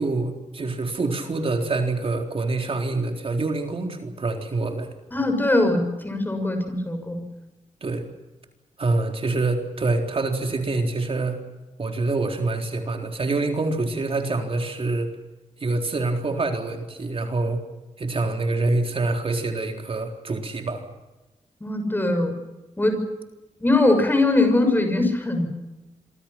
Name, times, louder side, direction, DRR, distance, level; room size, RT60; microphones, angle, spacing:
voice 1, 0.0-4.9 7.8-8.1 8.8-11.4 11.8-15.1 15.6-17.6 18.0-20.8, right 3 dB, 45° right, 4 dB, 3.9 m, -26 dB
voice 2, 5.1-7.2 21.6-22.3 22.8-23.0 23.6-25.5, left 2 dB, 15° left, 6 dB, 6.5 m, -21 dB
27.0 x 25.0 x 6.0 m, 1.1 s
wide cardioid pair, 110°, 13 cm